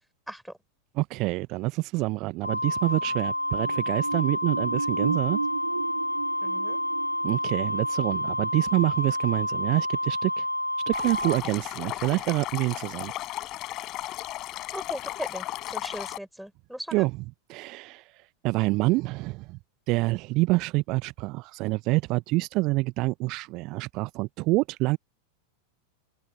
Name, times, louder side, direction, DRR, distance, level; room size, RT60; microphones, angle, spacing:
voice 1, 0.9-5.4 7.2-10.5 10.9-13.1 16.9-19.6 19.9-25.0, right 22 dB, 40° right, 0.8 m, -27 dB
Wind instrument woodwind instrument, 2.4-11.4, left 1 dB, 85° left, 4.0 m, -29 dB
sound 1, 3.3-9.7 10.0-10.1, right 5 dB, 75° right, 4.8 m, -35 dB
voice 2, 6.4-6.8 14.7-17.1, equal, ahead, 6.4 m, -38 dB
Stream, 10.9-16.2, left 16 dB, 35° left, 7.5 m, -35 dB
open air
figure-of-eight pair, 90°, 0 cm